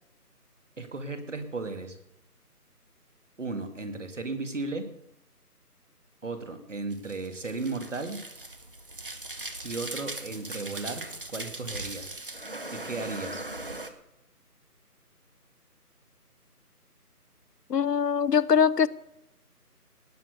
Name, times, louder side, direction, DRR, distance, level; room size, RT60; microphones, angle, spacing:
voice 1, 0.8-2.0 3.4-4.9 6.2-8.2 9.6-12.1 12.7-13.4, right 3 dB, 50° right, 7 dB, 2.1 m, -35 dB
sound 1, 6.9-13.9, right 2 dB, 35° right, 1.1 m, -39 dB
voice 2, 17.7-18.9, left 7 dB, 85° left, 15 dB, 0.7 m, -22 dB
18.5 x 6.9 x 7.8 m, 0.84 s
figure-of-eight pair, 170°, 47 cm